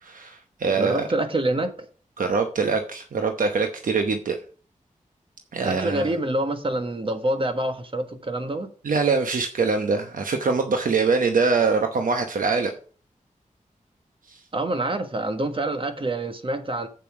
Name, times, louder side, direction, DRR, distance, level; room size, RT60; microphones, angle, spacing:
voice 1, 0.0-1.1 2.2-4.4 5.5-6.1 8.8-12.7 14.3-14.4, right 4 dB, 85° right, 0.9 m, -23 dB
voice 2, 0.8-1.9 5.6-8.7 14.5-16.9, right 1 dB, 40° right, 1.4 m, -26 dB
8.3 x 7.1 x 4.8 m
wide cardioid pair, 100°, 14 cm